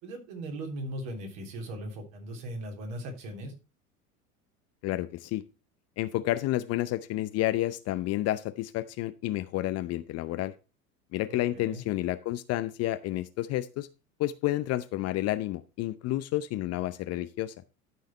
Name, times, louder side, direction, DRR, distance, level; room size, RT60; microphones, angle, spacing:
voice 1, 0.0-3.5 11.5-11.8, right 1 dB, 55° right, 3 dB, 3.4 m, -38 dB
voice 2, 4.8-5.4 6.0-10.5 11.1-13.9 14.2-17.5, left 15 dB, 35° left, 13 dB, 0.6 m, -30 dB
12.5 x 5.6 x 4.3 m, 0.30 s
figure-of-eight pair, 80°, 46 cm